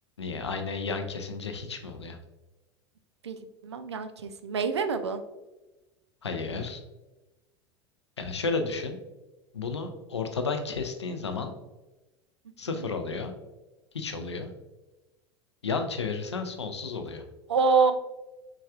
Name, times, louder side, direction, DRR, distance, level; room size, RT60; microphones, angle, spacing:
voice 1, 0.2-2.2 6.2-6.8 8.2-9.0 9.5-11.5 12.6-13.3 13.9-14.5 15.6-17.2, left 4 dB, 80° left, 6 dB, 0.5 m, -32 dB
voice 2, 3.6-5.2 12.7-12.9 17.5-17.9, right 5 dB, 80° right, 9 dB, 0.4 m, -26 dB
4.7 x 3.1 x 2.4 m, 1.1 s
figure-of-eight pair, 80°, 14 cm